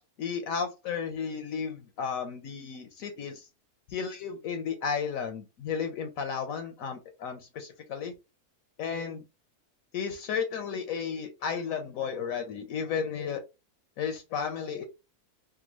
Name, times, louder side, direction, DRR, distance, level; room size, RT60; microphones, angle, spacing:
voice 1, 0.2-3.5 3.9-8.1 8.8-9.2 9.9-13.4 14.0-14.8, left 6 dB, 70° left, 7 dB, 0.9 m, -33 dB
3.5 x 2.1 x 3.0 m, 0.26 s
omnidirectional pair, 1.6 m